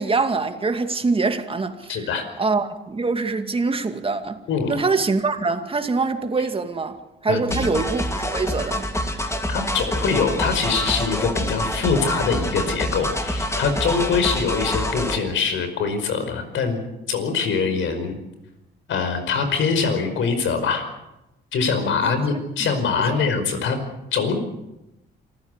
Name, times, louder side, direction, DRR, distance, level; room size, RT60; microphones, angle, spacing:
voice 1, 0.0-2.1 2.4-4.4 4.7-8.9 22.0-22.1 22.6-22.7 23.1-23.3, right 4 dB, 30° right, 2.4 m, -24 dB
voice 2, 1.9-2.3 4.5-4.8 7.3-7.8 9.5-16.8 17.1-18.2 18.9-20.9 21.5-23.8 24.1-24.4, left 5 dB, 75° left, 5.2 m, -23 dB
sound 1, 7.5-15.2, left 1 dB, 15° left, 2.8 m, -26 dB
27.5 x 15.0 x 8.3 m
cardioid pair, 90°, 20 cm